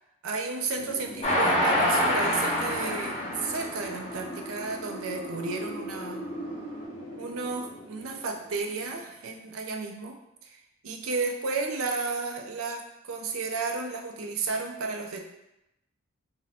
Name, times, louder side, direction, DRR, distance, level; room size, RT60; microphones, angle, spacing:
voice 1, 0.2-6.2 7.2-15.2, right 4 dB, 85° right, 3 dB, 0.4 m, -33 dB
Wind, 0.8-9.5, equal, 70° left, 0.8 m, -40 dB
Train, 1.2-4.7 5.2-5.3 5.6-5.7, left 1 dB, 30° left, 0.7 m, -26 dB
2.7 x 2.1 x 4.0 m, 0.87 s
head